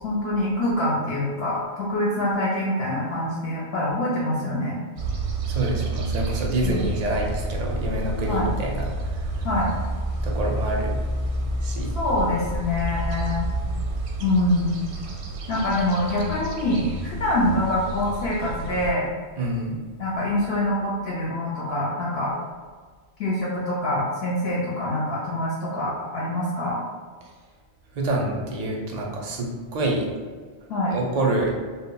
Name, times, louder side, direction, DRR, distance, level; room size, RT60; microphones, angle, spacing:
voice 1, 0.0-4.8 6.6-6.8 8.3-8.5 9.4-9.8 11.9-13.5 14.2-14.7 15.5-19.1 20.0-22.3 23.2-26.8 30.7-30.9, left 1 dB, 70° left, -5 dB, 0.8 m, -25 dB
sound 1, 5.0-18.9, right 3 dB, 80° right, 0.8 m, -32 dB
voice 2, 5.5-9.4 10.2-10.9 11.6-11.9 19.4-19.8 27.9-30.1 30.9-31.5, right 1 dB, 55° right, -1 dB, 0.5 m, -27 dB
sound 2, 5.9-14.7 15.4-15.8 16.4-16.5 20.0-20.7, equal, 35° left, 0.6 m, -30 dB
2.1 x 2.0 x 3.7 m, 1.5 s
omnidirectional pair, 1.1 m